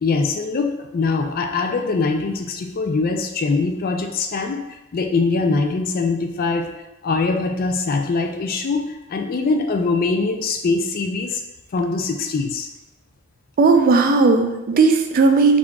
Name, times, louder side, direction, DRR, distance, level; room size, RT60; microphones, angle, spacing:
voice 1, 0.0-6.7 7.0-8.8 9.1-11.4 11.7-12.7, left 3 dB, 40° left, 4 dB, 0.3 m, -22 dB
voice 2, 13.6-15.6, right 4 dB, 40° right, 4 dB, 0.3 m, -15 dB
3.7 x 3.6 x 2.3 m, 1.0 s
head